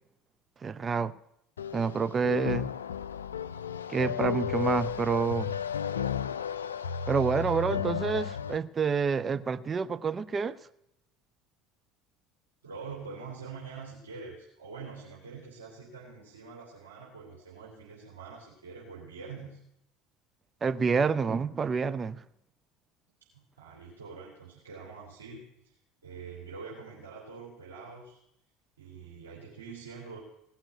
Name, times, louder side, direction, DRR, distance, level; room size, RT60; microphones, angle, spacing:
voice 1, 0.6-1.1 1.7-2.7 3.9-5.5 7.1-10.6 20.6-22.2, right 5 dB, 30° right, 0.6 m, -28 dB
sound 1, 1.6-8.6, left 7 dB, 85° left, 0.4 m, -33 dB
voice 2, 12.6-19.6 23.3-25.7 26.0-28.2 28.8-30.2, right 5 dB, 85° right, 3.0 m, -45 dB
17.0 x 5.9 x 9.4 m
hypercardioid pair, 70°, 0 cm